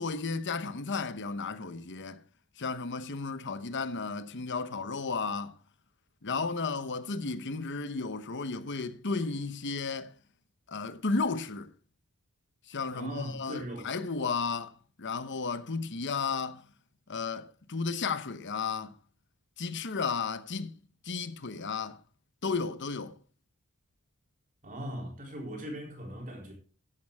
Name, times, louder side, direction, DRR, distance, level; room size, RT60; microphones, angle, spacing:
voice 1, 0.0-2.2 2.6-5.5 6.2-10.1 10.7-11.7 12.7-14.7 15.0-16.6 17.1-18.9 19.6-20.8 21.0-22.0 22.4-23.1, left 4 dB, 55° left, 1.0 m, -33 dB
voice 2, 12.9-13.9 24.6-26.5, equal, 40° right, 4.1 m, -39 dB
14.0 x 11.0 x 3.6 m
head